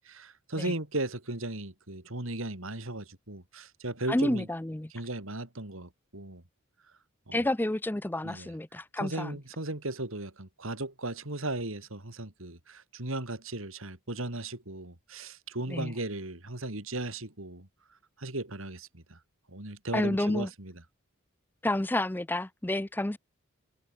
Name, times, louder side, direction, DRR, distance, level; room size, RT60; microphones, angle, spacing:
voice 1, 0.0-4.5 4.9-6.4 7.3-7.5 8.2-8.5 9.0-17.7 18.2-19.2 19.5-20.7, right 2 dB, 80° right, 3.8 m, -36 dB
voice 2, 4.1-4.9 7.3-9.4 15.7-15.9 19.9-20.5 21.6-23.2, left 1 dB, 10° left, 0.4 m, -30 dB
head